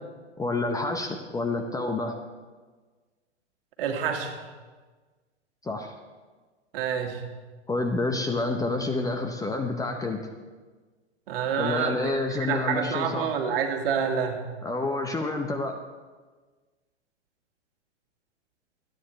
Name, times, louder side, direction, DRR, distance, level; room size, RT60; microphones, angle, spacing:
voice 1, 0.4-2.2 5.6-5.9 7.7-10.3 11.6-13.3 14.6-15.8, left 2 dB, 10° left, 4 dB, 0.8 m, -28 dB
voice 2, 3.8-4.4 6.7-7.2 11.3-12.1 12.5-14.5, right 7 dB, 55° right, 4 dB, 2.0 m, -27 dB
25.5 x 9.1 x 3.3 m, 1.4 s
figure-of-eight pair, 100°, 35 cm